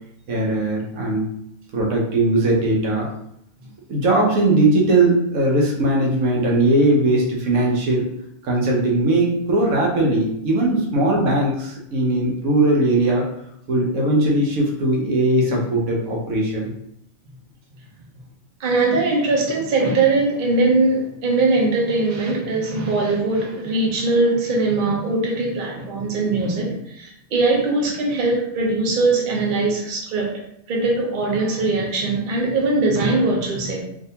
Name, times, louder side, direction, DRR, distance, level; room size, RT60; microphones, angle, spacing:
voice 1, 0.3-1.3 1.7-3.1 3.9-8.1 8.4-13.3 13.7-16.7, right 2 dB, 80° right, -1 dB, 1.2 m, -19 dB
voice 2, 18.6-30.3 30.7-33.8, right 2 dB, 45° right, -2 dB, 0.8 m, -21 dB
3.6 x 2.6 x 2.7 m, 0.75 s
omnidirectional pair, 1.4 m